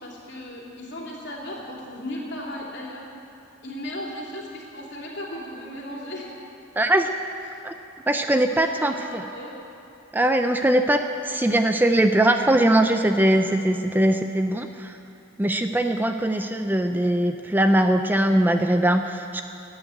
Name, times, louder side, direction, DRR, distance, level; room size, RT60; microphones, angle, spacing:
voice 1, 0.0-3.0 3.6-6.3 8.3-9.5, left 1 dB, 60° left, -3 dB, 3.0 m, -36 dB
voice 2, 6.8-7.1 7.6-7.8 8.1-9.2 10.1-15.0 15.4-19.4, right 1 dB, 10° right, 6 dB, 0.4 m, -21 dB
14.5 x 8.9 x 9.2 m, 2.8 s
head